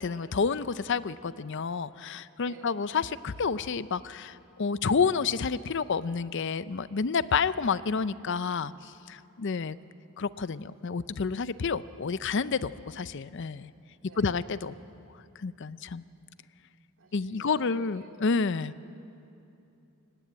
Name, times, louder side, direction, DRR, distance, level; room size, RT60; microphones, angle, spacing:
voice 1, 0.0-9.8 10.2-13.7 14.2-14.7 15.4-16.0 17.1-18.7, left 5 dB, 55° left, 16 dB, 0.5 m, -29 dB
voice 2, 14.0-14.4 17.0-18.2 18.8-18.9, right 2 dB, 60° right, 2 dB, 2.5 m, -52 dB
23.5 x 19.0 x 9.1 m, 2.8 s
head